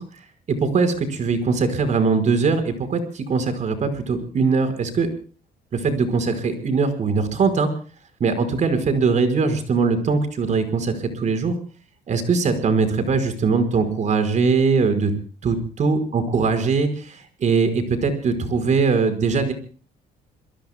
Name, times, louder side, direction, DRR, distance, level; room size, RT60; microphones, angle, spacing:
voice 1, 0.0-5.1 5.7-7.7 8.2-11.5 12.1-15.1 15.4-19.5, right 4 dB, 45° right, 9 dB, 5.1 m, -21 dB
29.0 x 22.0 x 2.3 m, 0.40 s
cardioid pair, 110°, 17 cm